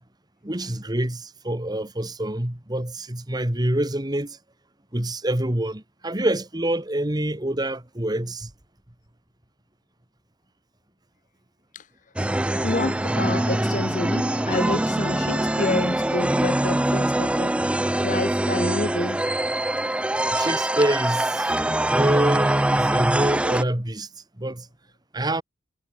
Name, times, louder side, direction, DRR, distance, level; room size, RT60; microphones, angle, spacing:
voice 1, 0.4-4.4 4.9-8.5 20.3-24.1 24.4-24.7 25.1-25.4, right 1 dB, 25° right, 2.0 m, -26 dB
sound 1, 12.2-23.6, right 1 dB, 5° right, 0.4 m, -23 dB
voice 2, 12.6-17.7 18.0-19.2, left 2 dB, 45° left, 1.0 m, -29 dB
head